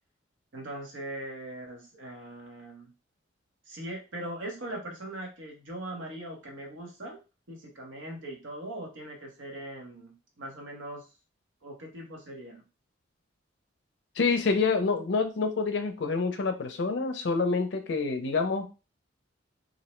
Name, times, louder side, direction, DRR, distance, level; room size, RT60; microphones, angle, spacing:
voice 1, 0.5-2.9 3.7-7.2 7.5-11.1 11.6-12.6, right 1 dB, 75° right, 1 dB, 0.9 m, -40 dB
voice 2, 14.2-18.7, left 4 dB, 65° left, 6 dB, 0.4 m, -27 dB
2.5 x 2.1 x 3.0 m, 0.30 s
head